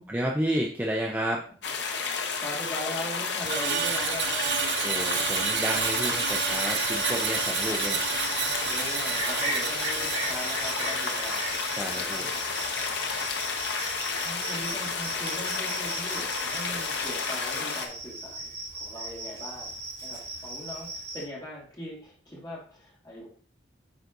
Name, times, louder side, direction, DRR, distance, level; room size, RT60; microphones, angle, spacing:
voice 1, 0.1-1.5 4.8-8.0 11.7-12.3, equal, 10° right, -1 dB, 0.5 m, -31 dB
sound 1, 1.6-17.9, left 5 dB, 65° left, 0.8 m, -31 dB
voice 2, 2.4-4.6 8.6-11.5 11.8-12.6 12.9-13.0 13.8-19.7 20.0-23.3, equal, 20° left, -5 dB, 2.2 m, -40 dB
Screech, 3.4-13.8 14.1-14.4, right 8 dB, 60° right, 0.5 m, -31 dB
Cricket, 5.6-21.2, right 2 dB, 30° right, 3.0 m, -38 dB
9.1 x 4.0 x 2.6 m, 0.44 s
head